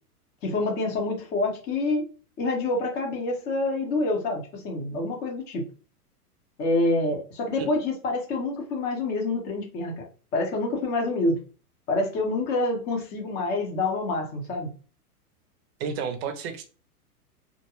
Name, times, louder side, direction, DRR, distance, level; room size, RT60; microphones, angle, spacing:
voice 1, 0.4-2.1 2.4-5.6 6.6-10.1 10.3-11.4 11.9-14.7, left 2 dB, 25° left, 0.6 m, -27 dB
voice 2, 15.8-16.6, right 6 dB, 45° right, 0.6 m, -31 dB
2.4 x 2.2 x 2.9 m
hypercardioid pair, 140°, 46 cm